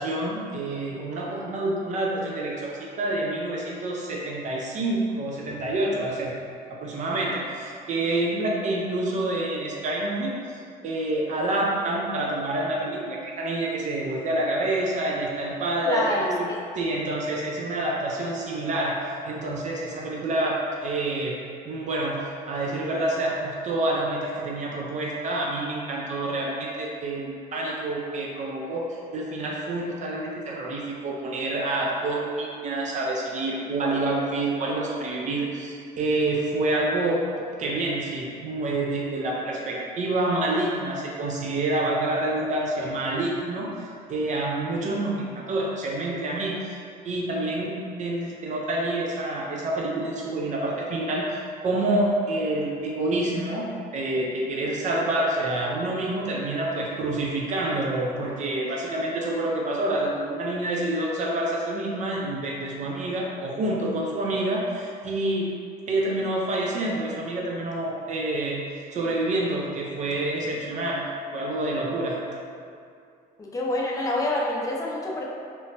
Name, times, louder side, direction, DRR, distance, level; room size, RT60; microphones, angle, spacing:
voice 1, 0.0-6.3 6.8-16.5 16.7-19.0 19.2-21.4 21.6-37.2 37.6-46.7 47.0-65.5 65.9-68.7 68.9-71.1 71.3-72.2, right 2 dB, 45° right, -2 dB, 0.4 m, -27 dB
voice 2, 15.9-16.6 73.4-75.3, left 1 dB, 20° left, -3 dB, 0.5 m, -27 dB
3.0 x 2.1 x 2.7 m, 2.4 s
cardioid pair, 110°, 17 cm